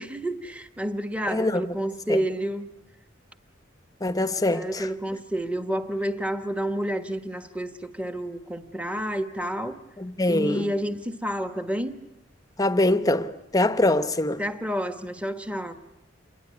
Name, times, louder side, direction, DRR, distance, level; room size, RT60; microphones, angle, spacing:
voice 1, 0.0-2.7 4.2-9.8 10.3-12.0 14.4-15.7, equal, 5° right, 1.3 m, -30 dB
voice 2, 1.3-1.8 2.1-2.2 4.0-4.9 10.0-10.7 12.6-14.4, left 1 dB, 20° left, 0.9 m, -24 dB
27.5 x 22.0 x 9.6 m
head